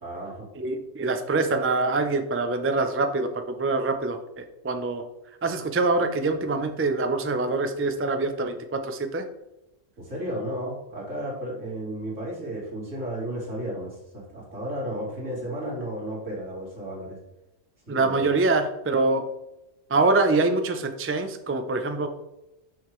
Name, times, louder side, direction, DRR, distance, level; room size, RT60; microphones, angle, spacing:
voice 1, 0.0-0.5 10.0-17.2 17.9-18.3, right 1 dB, 75° right, -5 dB, 3.1 m, -33 dB
voice 2, 0.6-5.0 5.4-9.2 17.9-19.3 19.9-22.1, right 3 dB, 20° right, 7 dB, 0.3 m, -25 dB
6.8 x 6.3 x 3.2 m, 0.93 s
omnidirectional pair, 1.3 m